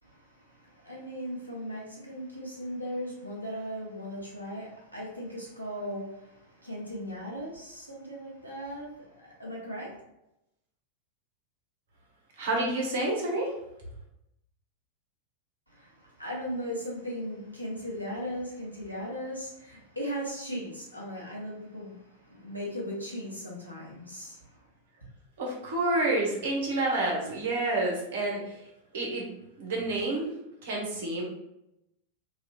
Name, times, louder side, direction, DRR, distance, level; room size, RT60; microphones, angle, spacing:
voice 1, 0.0-10.0 15.7-24.6, equal, 90° left, -5 dB, 1.1 m, -38 dB
voice 2, 12.4-13.5 25.4-28.6 28.9-29.3 29.6-30.3 30.6-31.2, right 2 dB, 60° right, -1 dB, 1.1 m, -29 dB
3.0 x 2.8 x 3.0 m, 0.85 s
figure-of-eight pair, 90°, 0 cm